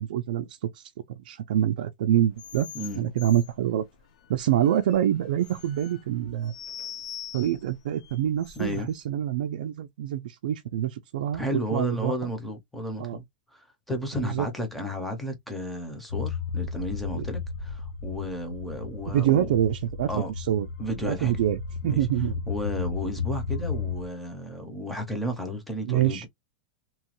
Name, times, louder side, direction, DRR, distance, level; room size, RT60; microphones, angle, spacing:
voice 1, 0.0-2.7 3.0-3.8 4.3-6.5 7.3-12.1 13.0-13.2 14.2-14.5 17.2-17.3 19.1-20.7 21.0-22.4 25.8-26.3, right 11 dB, 60° right, 0.4 m, -26 dB
sound 1, 2.3-9.0, left 9 dB, 50° left, 0.5 m, -44 dB
voice 2, 2.7-3.1 8.6-8.9 11.3-13.2 13.5-19.5 20.1-20.3 20.8-21.4 21.8-22.0 22.5-26.3, equal, ahead, 0.6 m, -33 dB
sound 2, 16.1-24.1, left 5 dB, 85° left, 0.7 m, -34 dB
2.9 x 2.2 x 2.9 m
supercardioid pair, 180°, 5 cm